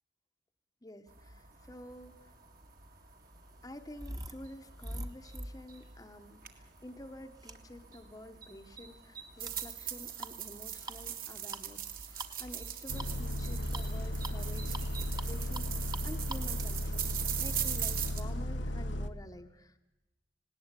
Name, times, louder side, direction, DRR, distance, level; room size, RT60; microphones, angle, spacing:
voice 1, 0.8-2.3 3.6-19.8, left 1 dB, 20° left, 5 dB, 1.0 m, -50 dB
sound 1, 1.1-18.2, right 10 dB, 50° right, 2.0 m, -42 dB
sound 2, 2.3-18.0, right 1 dB, 20° right, 1.2 m, -47 dB
Bus, 12.9-19.1, equal, 85° left, 1.0 m, -35 dB
19.5 x 18.0 x 8.3 m, 0.99 s
head